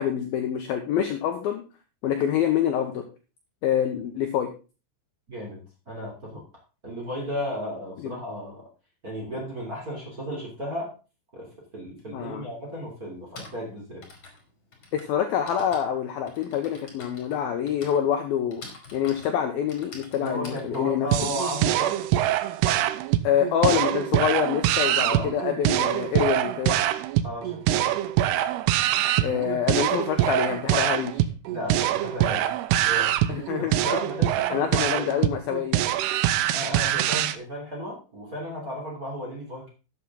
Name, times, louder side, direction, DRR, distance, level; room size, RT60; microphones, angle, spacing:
voice 1, 0.0-1.6 2.0-3.1 3.6-4.5 8.0-8.1 12.1-12.5 14.9-18.6 18.9-21.1 23.2-26.8 29.2-31.2 33.3-33.7 34.5-35.8, left 9 dB, 75° left, 5 dB, 2.3 m, -26 dB
voice 2, 5.3-5.6 5.9-6.4 6.8-8.6 9.0-10.9 11.3-14.0 20.1-22.0 25.0-25.3 27.2-27.9 29.3-29.4 31.5-35.1 36.5-39.7, equal, 25° right, -3 dB, 2.7 m, -34 dB
Typing, 12.0-12.1 13.1-22.2, left 3 dB, 30° left, 3.2 m, -47 dB
sound 1, 21.1-37.4, right 13 dB, 90° right, 2.3 m, -24 dB
12.5 x 8.4 x 3.8 m, 0.32 s
omnidirectional pair, 5.5 m